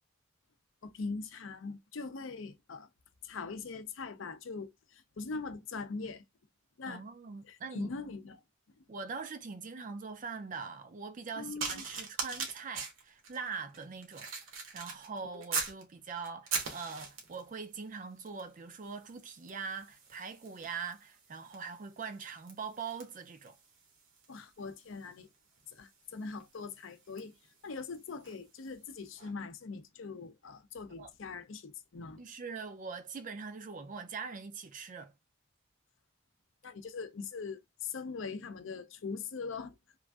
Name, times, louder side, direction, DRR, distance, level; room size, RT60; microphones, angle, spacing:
voice 1, 0.8-2.9 3.2-6.2 6.8-7.0 7.4-8.4 11.4-11.8 15.3-15.6 24.3-25.3 25.7-27.3 27.6-32.2 36.6-39.7, left 4 dB, 70° left, 0.5 m, -41 dB
voice 2, 6.8-7.9 8.9-14.3 14.7-23.6 31.0-31.1 32.2-35.1, right 5 dB, 40° right, 0.4 m, -42 dB
sound 1, 11.6-15.8 16.2-17.5 18.3-18.5 18.8-28.5 29.2-29.3, right 5 dB, 75° right, 1.0 m, -42 dB
3.1 x 2.5 x 2.3 m
head